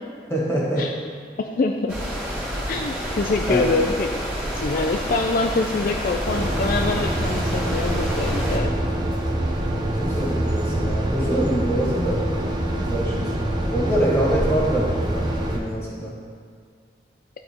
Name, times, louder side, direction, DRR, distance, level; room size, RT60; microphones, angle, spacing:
voice 1, 0.3-0.9 3.5-3.7 10.0-12.3 12.8-13.4 13.7-16.1, right 1 dB, 15° left, -4 dB, 1.5 m, -25 dB
voice 2, 1.4-1.9 2.7-4.1 4.5-8.7, left 3 dB, 50° left, 3 dB, 0.4 m, -24 dB
sound 1, 1.9-8.6, equal, 10° right, 2.0 m, -29 dB
sound 2, 6.3-15.6, right 1 dB, 25° right, 0.7 m, -25 dB
12.0 x 4.0 x 4.3 m, 2.1 s
head